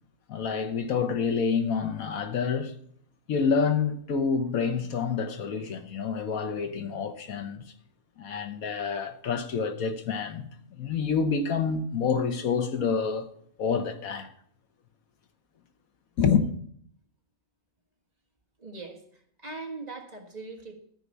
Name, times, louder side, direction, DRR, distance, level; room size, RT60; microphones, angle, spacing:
voice 1, 0.3-2.8 3.3-7.6 8.2-10.5 10.7-13.3 13.6-14.3 16.2-16.5, left 5 dB, 85° left, 1.5 m, -27 dB
voice 2, 18.6-20.8, right 3 dB, 30° right, 1.5 m, -41 dB
13.5 x 4.9 x 8.4 m
omnidirectional pair, 1.4 m